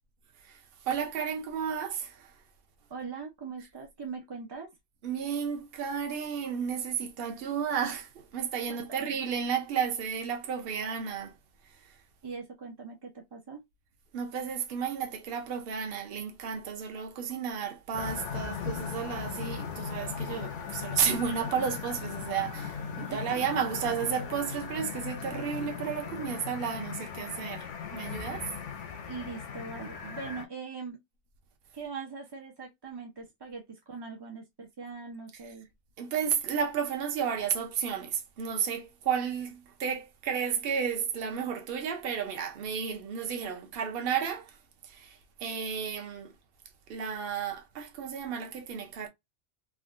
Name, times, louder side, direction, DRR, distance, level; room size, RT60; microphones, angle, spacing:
voice 1, 0.4-2.4 5.0-11.3 11.8-11.9 14.1-28.5 36.0-44.6 44.8-46.3 46.9-49.1, right 7 dB, 55° right, 0.8 m, -32 dB
voice 2, 2.9-4.7 8.7-9.2 12.2-13.6 23.0-23.2 29.0-31.0 31.7-35.7, right 5 dB, 40° right, 0.3 m, -41 dB
sound 1, 17.9-30.5, left 7 dB, 75° left, 1.0 m, -38 dB
3.6 x 2.2 x 2.5 m
omnidirectional pair, 1.3 m